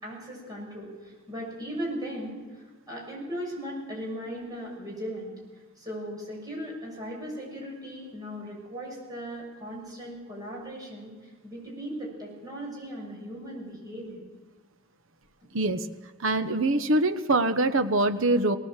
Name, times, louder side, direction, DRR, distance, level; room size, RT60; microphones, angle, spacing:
voice 1, 0.0-5.3 5.8-11.1 11.4-14.2, equal, 15° right, -3 dB, 6.9 m, -38 dB
voice 2, 15.5-15.9 16.2-18.6, right 2 dB, 60° right, 10 dB, 1.1 m, -24 dB
19.5 x 19.0 x 7.5 m, 1.3 s
head